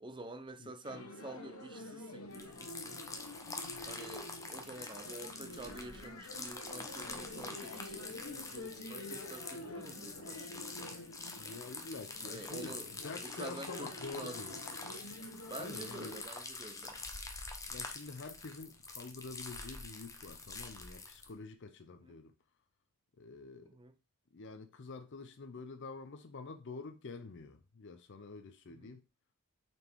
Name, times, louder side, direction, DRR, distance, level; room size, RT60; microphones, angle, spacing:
voice 1, 0.0-3.0 3.8-11.0 12.2-12.9 13.2-14.6 15.5-17.0 22.1-22.2 23.6-23.9 28.7-28.9, right 2 dB, 20° right, 0.7 m, -49 dB
sound 1, 0.8-16.2, left 2 dB, 75° left, 1.1 m, -48 dB
sound 2, 2.3-21.3, left 3 dB, 15° left, 0.9 m, -46 dB
voice 2, 11.3-14.6 15.6-16.2 17.7-22.3 23.2-23.7 24.3-29.0, left 3 dB, 55° left, 0.6 m, -47 dB
6.3 x 4.4 x 4.5 m
head